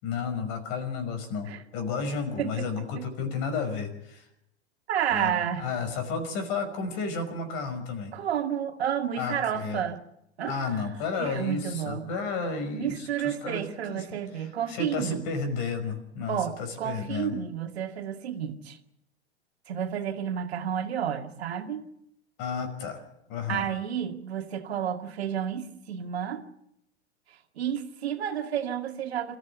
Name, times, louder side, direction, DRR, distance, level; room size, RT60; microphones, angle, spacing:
voice 1, 0.0-4.2 5.1-8.1 9.2-9.8 10.5-17.3 22.4-23.0 23.3-23.7, left 4 dB, 50° left, 8 dB, 5.6 m, -32 dB
voice 2, 2.4-3.1 4.9-5.7 8.1-10.0 10.4-10.8 11.2-12.1 12.7-15.3 16.3-18.8 19.7-21.9 23.5-26.4 27.6-29.4, right 9 dB, 70° right, 5 dB, 2.3 m, -31 dB
27.0 x 15.0 x 8.2 m, 0.80 s
hypercardioid pair, 100°, 33 cm